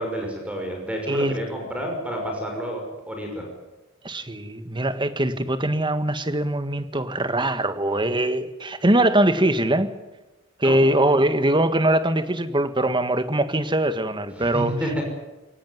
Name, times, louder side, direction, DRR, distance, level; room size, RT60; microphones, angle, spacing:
voice 1, 0.0-2.8 3.1-3.4 10.6-10.8 14.4-15.0, equal, 5° right, 1 dB, 6.0 m, -29 dB
voice 2, 1.1-1.4 4.0-9.9 10.6-14.7, right 1 dB, 20° right, 10 dB, 1.7 m, -22 dB
23.0 x 19.0 x 9.7 m, 1.1 s
head